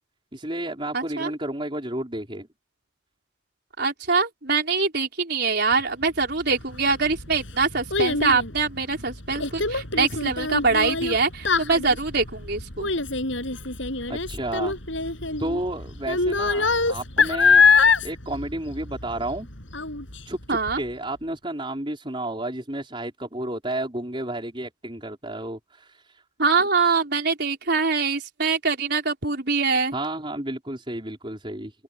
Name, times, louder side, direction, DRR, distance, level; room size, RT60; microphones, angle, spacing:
voice 1, 0.3-2.5 14.1-14.8 15.4-17.6 18.0-19.5 20.2-25.9 29.9-31.7, right 1 dB, 25° right, 5.0 m, -31 dB
voice 2, 0.9-1.3 3.8-12.9 20.5-20.8 26.4-29.9, right 4 dB, 55° right, 5.2 m, -24 dB
Child speech kid speaking, 6.7-19.4 19.7-20.2 20.7-20.8, left 4 dB, 70° left, 8.0 m, -23 dB
open air
head